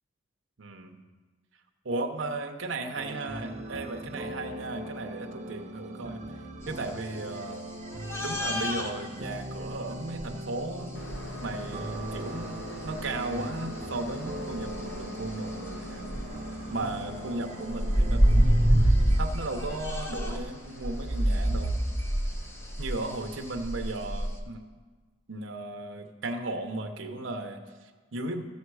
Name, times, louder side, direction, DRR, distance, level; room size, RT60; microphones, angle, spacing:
voice 1, 0.6-1.0 1.8-6.2 6.7-7.7 8.2-11.0 11.4-16.1 16.7-21.7 22.8-24.7 25.3-28.4, right 2 dB, 90° right, 4 dB, 0.8 m, -36 dB
sound 1, 2.9-19.2, right 1 dB, 35° right, 0.8 m, -40 dB
sound 2, 8.0-8.9 10.2-10.3 12.0-12.1 13.0-13.1 14.6-14.8 15.3-15.4 15.8-16.3 17.7-20.4 20.8-24.4, equal, 15° left, 0.8 m, -25 dB
Train, 10.9-23.6, left 1 dB, 65° left, 1.3 m, -44 dB
14.0 x 6.9 x 4.7 m, 1.4 s
head